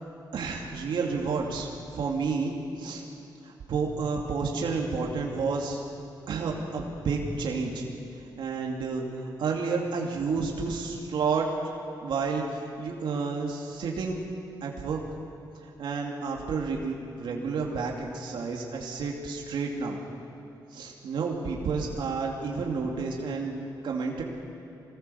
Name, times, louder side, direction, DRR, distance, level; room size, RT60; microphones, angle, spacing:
voice 1, 0.3-3.0 3.4-5.8 6.3-7.8 8.4-11.5 12.0-14.2 14.6-15.0 15.6-20.0 20.7-24.2, right 4 dB, 80° right, -1 dB, 2.5 m, -30 dB
23.0 x 18.5 x 7.0 m, 2.8 s
cardioid pair, 95°, 8 cm